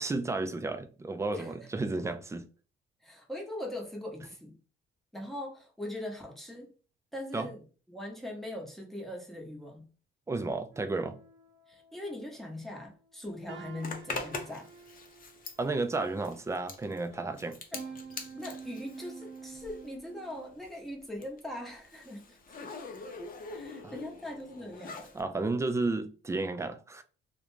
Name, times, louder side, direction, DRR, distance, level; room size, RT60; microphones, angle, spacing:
voice 1, 0.0-2.5 7.3-7.5 10.3-11.2 15.6-17.6 23.8-23.9 25.1-27.0, right 3 dB, 15° right, 0.3 m, -32 dB
voice 2, 1.3-1.7 3.0-4.6 5.1-6.7 7.1-9.9 11.7-14.7 17.7-17.8 18.3-22.7 23.5-25.2, left 1 dB, ahead, 0.8 m, -41 dB
sound 1, 10.7-12.6 13.0-13.2 13.5-16.7 17.3-20.6, right 5 dB, 75° right, 0.7 m, -49 dB
Zipper (clothing), 13.8-20.0 20.2-25.2, left 3 dB, 45° left, 0.6 m, -43 dB
2.4 x 2.2 x 3.1 m
cardioid pair, 90°, 20 cm